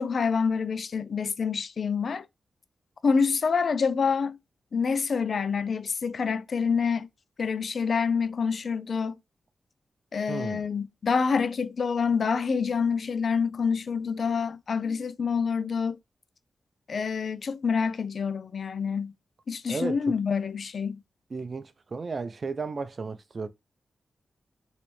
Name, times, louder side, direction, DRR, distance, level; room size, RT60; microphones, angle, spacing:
voice 1, 0.0-2.3 3.0-4.4 4.7-7.1 7.4-9.1 10.1-16.0 16.9-19.1 19.5-21.0, left 5 dB, 60° left, 0.4 m, -27 dB
voice 2, 10.3-10.7 19.7-20.0 21.3-23.5, right 4 dB, 50° right, 0.5 m, -34 dB
3.2 x 2.9 x 3.1 m
cardioid pair, 75°, 0 cm